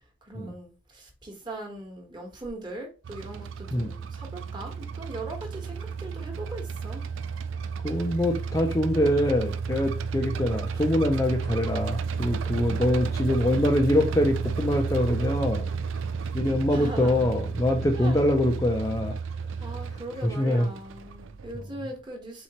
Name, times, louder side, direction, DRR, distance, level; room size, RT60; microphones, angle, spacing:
voice 1, 0.3-7.0 16.7-17.3 17.9-18.2 19.6-22.4, right 2 dB, 25° right, 1.2 m, -40 dB
sound 1, 3.0-21.6, right 5 dB, 85° right, 0.4 m, -32 dB
voice 2, 7.8-15.7 16.3-19.1 20.2-20.7, left 1 dB, 15° left, 0.5 m, -24 dB
4.3 x 3.8 x 2.9 m
head